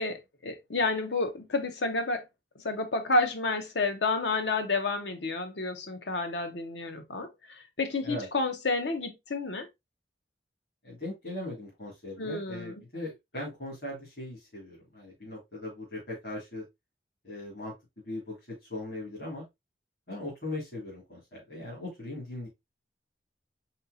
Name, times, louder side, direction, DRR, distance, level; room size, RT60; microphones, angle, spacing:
voice 1, 0.0-2.2 2.6-9.7 12.2-12.8, left 3 dB, 85° left, 0.9 m, -30 dB
voice 2, 10.8-16.6 17.2-17.7 18.1-19.4 20.1-22.5, left 1 dB, 60° left, 2.0 m, -39 dB
4.3 x 4.1 x 2.4 m
head